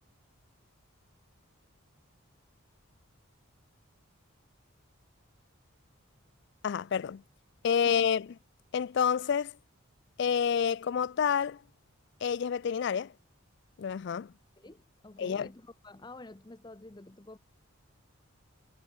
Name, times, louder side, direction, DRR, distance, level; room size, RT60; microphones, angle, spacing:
voice 1, 6.6-7.2 7.6-8.3 8.7-9.5 10.2-11.6 12.2-13.1 13.8-14.3 15.2-15.5, left 7 dB, 55° left, 0.3 m, -28 dB
voice 2, 14.6-17.4, left 2 dB, 20° left, 0.7 m, -49 dB
head